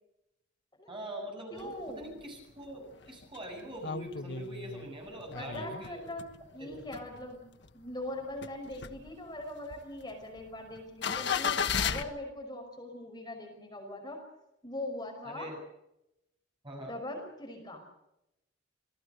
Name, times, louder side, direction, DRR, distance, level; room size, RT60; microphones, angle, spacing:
voice 1, 0.9-6.0 6.6-6.8 15.2-15.6 16.6-17.0, right 1 dB, 25° right, 2 dB, 7.7 m, -43 dB
voice 2, 1.5-2.1 5.3-7.4 7.7-14.2 14.6-15.5 16.8-17.8, left 1 dB, 20° left, 1 dB, 5.5 m, -41 dB
sound 1, 1.6-2.2 2.7-2.8 2.9-6.4 6.7-7.7 8.1-12.0, left 6 dB, 65° left, 1.3 m, -35 dB
27.5 x 18.5 x 6.6 m, 0.86 s
head